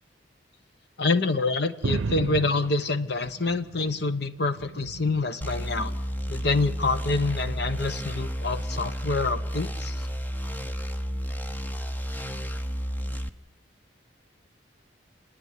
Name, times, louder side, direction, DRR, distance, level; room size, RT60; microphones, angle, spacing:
voice 1, 1.0-5.9 6.3-10.1, left 3 dB, 60° left, 11 dB, 1.0 m, -26 dB
sound 1, 1.8-4.1 4.4-5.4 6.2-6.6 7.6-7.8, right 3 dB, 85° right, 0.6 m, -34 dB
sound 2, 5.4-13.3, equal, 10° left, 0.7 m, -32 dB
28.0 x 9.9 x 9.6 m, 1.1 s
head